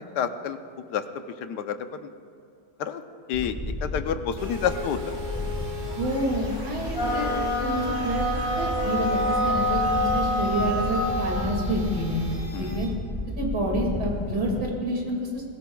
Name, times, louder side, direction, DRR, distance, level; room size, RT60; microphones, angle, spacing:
voice 1, 0.1-0.6 0.9-1.0 1.4-2.0 2.8-3.0 3.3-5.0 12.5-12.8, left 8 dB, 75° left, 9 dB, 1.3 m, -29 dB
Wind, 3.3-14.6, left 1 dB, 10° left, 1.1 m, -33 dB
sound 1, 4.4-12.8, left 3 dB, 40° right, 3.7 m, -40 dB
voice 2, 5.9-7.3 7.6-12.3 12.6-12.9 13.4-15.4, equal, 65° right, -1 dB, 2.9 m, -28 dB
sound 2, 6.9-11.6, equal, 35° left, 2.7 m, -26 dB
21.5 x 16.0 x 2.3 m, 2.6 s
omnidirectional pair, 1.9 m